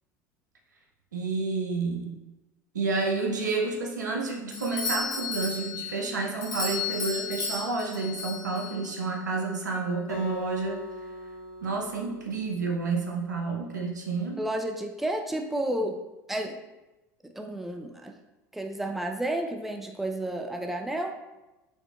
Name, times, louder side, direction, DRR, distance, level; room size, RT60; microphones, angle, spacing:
voice 1, 1.1-2.1 2.7-11.1 11.6-14.4, right 3 dB, 85° right, 0 dB, 0.6 m, -30 dB
Doorbell, 4.5-9.0, left 4 dB, 45° left, 1.0 m, -33 dB
Acoustic guitar, 10.1-13.3, left 1 dB, 75° left, 0.8 m, -41 dB
voice 2, 14.4-16.0 16.3-16.6 17.2-18.1 18.5-21.1, right 1 dB, 5° right, 3 dB, 0.4 m, -31 dB
4.3 x 2.8 x 2.3 m, 1.0 s
hypercardioid pair, 70°, 9 cm